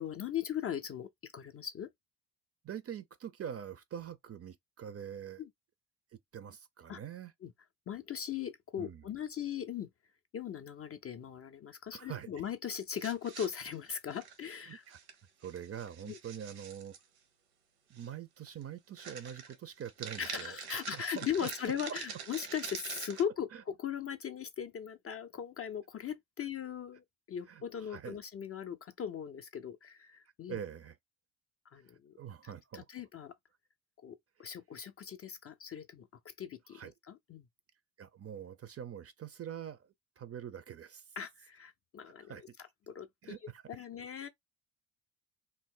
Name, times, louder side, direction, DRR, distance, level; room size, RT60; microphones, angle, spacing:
voice 1, 0.0-1.9 5.4-5.5 6.9-7.0 7.4-7.5 7.9-9.9 10.3-14.8 16.1-16.2 20.2-30.6 31.7-32.1 32.7-33.3 34.0-36.8 37.1-37.5 41.2-42.3 42.9-43.4 43.7-44.3, left 8 dB, 35° left, 0.4 m, -39 dB
voice 2, 2.6-5.4 6.1-7.3 8.8-9.1 11.9-12.4 14.7-15.0 15.4-16.9 17.9-21.5 23.5-23.6 27.5-28.2 30.5-31.0 31.8-31.9 32.2-32.9 34.4-34.5 36.7-36.9 38.0-41.0 42.0-42.4 43.2-43.9, right 9 dB, 35° right, 0.5 m, -45 dB
sound 1, 13.0-14.5 14.9-15.1 15.4-17.0 17.9-18.1 18.5-18.6 19.0-23.2, right 7 dB, 80° right, 1.0 m, -45 dB
2.7 x 2.0 x 3.7 m
supercardioid pair, 60°, 45 cm